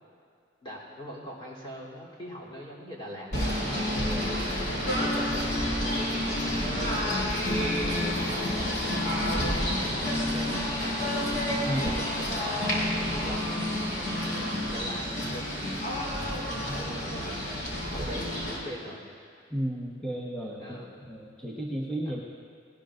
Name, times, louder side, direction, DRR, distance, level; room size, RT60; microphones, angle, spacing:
voice 1, 0.6-3.6 4.1-6.1 6.6-10.5 11.6-13.4 14.7-15.5 16.6-17.4 17.9-19.0 20.6-20.9 22.0-22.2, equal, 25° left, -5 dB, 3.4 m, -42 dB
Singing / Bird, 3.3-18.6, left 1 dB, 55° left, 3.8 m, -29 dB
voice 2, 4.0-4.3 11.6-11.8 16.5-16.9 17.7-17.8 19.5-22.2, right 1 dB, 5° left, -5 dB, 1.1 m, -34 dB
20.0 x 18.0 x 2.6 m, 2.3 s
head